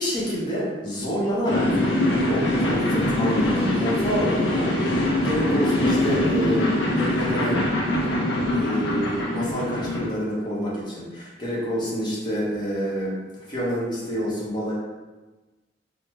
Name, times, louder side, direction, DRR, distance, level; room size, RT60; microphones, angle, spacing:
voice 1, 0.0-1.8 2.3-7.7 8.1-8.2 8.5-14.7, equal, 25° left, -7 dB, 1.0 m, -28 dB
sound 1, 1.5-10.1, left 1 dB, 90° left, 0.6 m, -23 dB
3.8 x 2.1 x 3.2 m, 1.2 s
head